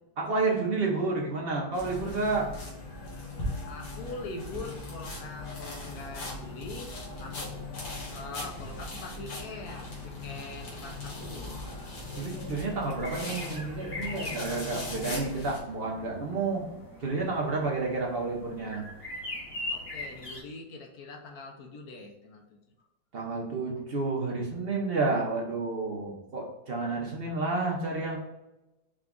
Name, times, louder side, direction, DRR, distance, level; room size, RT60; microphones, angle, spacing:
voice 1, 0.2-2.5 12.1-16.6 17.0-18.8 23.1-28.2, right 3 dB, 50° right, -2 dB, 0.7 m, -30 dB
Pressing down on sponge, 1.7-15.6, left 2 dB, 85° left, 2.1 m, -39 dB
voice 2, 3.7-6.9 7.2-7.6 7.9-11.6 19.7-22.6 23.8-23.9, left 3 dB, 65° left, 2 dB, 1.0 m, -43 dB
sound 1, 4.3-20.4, left 2 dB, 30° left, 0.6 m, -44 dB
5.0 x 2.3 x 3.7 m, 0.98 s
omnidirectional pair, 2.1 m